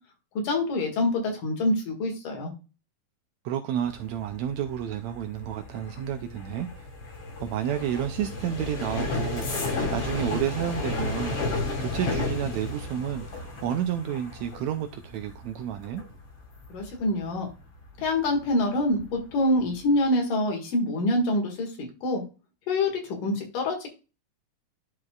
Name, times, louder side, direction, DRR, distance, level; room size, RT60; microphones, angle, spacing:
voice 1, 0.4-2.5 16.7-17.5 18.0-22.2 22.7-23.9, left 1 dB, 90° left, 3.5 m, -26 dB
voice 2, 3.4-6.9 7.4-16.0, right 10 dB, 80° right, 1.6 m, -31 dB
sound 1, 3.8-18.5 18.8-19.2 19.5-19.9, left 2 dB, 45° left, 2.5 m, -33 dB
11.5 x 4.6 x 2.4 m
omnidirectional pair, 3.7 m